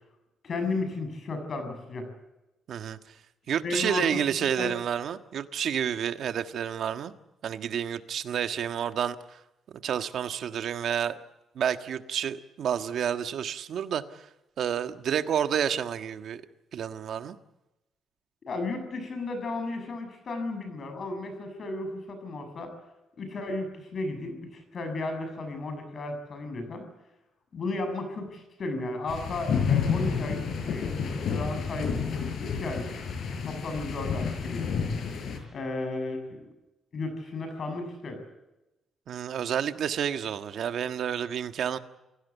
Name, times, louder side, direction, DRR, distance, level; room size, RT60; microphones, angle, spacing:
voice 1, 0.4-2.1 3.6-4.2 4.6-4.7 18.5-22.7 23.2-26.9 27.5-30.9 31.2-31.9 32.4-32.9 33.4-34.7 35.5-36.4 36.9-38.2, left 2 dB, 45° left, 8 dB, 6.9 m, -34 dB
voice 2, 2.7-3.0 3.5-7.1 7.4-9.4 9.8-11.1 11.5-14.2 14.6-16.4 16.7-17.3 39.1-41.8, right 8 dB, 65° right, 9 dB, 1.5 m, -30 dB
sound 1, 29.1-35.4, left 6 dB, 60° left, 5.9 m, -30 dB
29.0 x 17.0 x 8.2 m, 0.99 s
cardioid pair, 140°, 0 cm